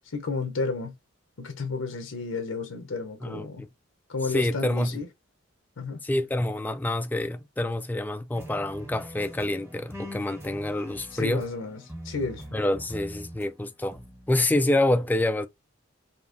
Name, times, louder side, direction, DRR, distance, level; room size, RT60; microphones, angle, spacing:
voice 1, 0.1-0.9 1.4-3.6 4.1-5.1 5.8-6.0 11.1-12.5, left 4 dB, 85° left, 0.7 m, -32 dB
voice 2, 3.2-3.7 4.3-5.0 6.0-11.5 12.5-14.0 14.3-15.5, left 1 dB, 10° left, 0.3 m, -27 dB
sound 1, 8.3-13.5 13.9-14.3, equal, 10° right, 1.1 m, -43 dB
5.1 x 2.8 x 2.5 m
head